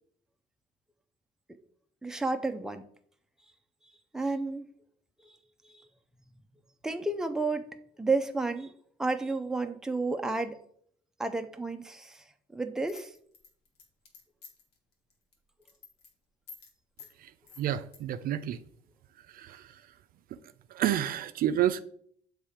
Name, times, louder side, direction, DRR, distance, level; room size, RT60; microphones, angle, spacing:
voice 1, 2.0-2.8 4.1-4.7 6.8-7.7 8.0-10.6 11.2-12.2 12.5-13.1, right 3 dB, 5° right, 6 dB, 0.5 m, -31 dB
sound 1, 12.9-14.7 15.1-15.3 15.6-16.1 16.5-16.7 17.0-17.1 17.5-18.0, left 5 dB, 75° left, 1.4 m, -50 dB
voice 2, 17.6-18.6 19.3-19.9 20.3-20.4 20.7-21.8, right 11 dB, 60° right, 11 dB, 0.4 m, -30 dB
7.0 x 3.2 x 4.8 m, 0.63 s
cardioid pair, 110°, 17 cm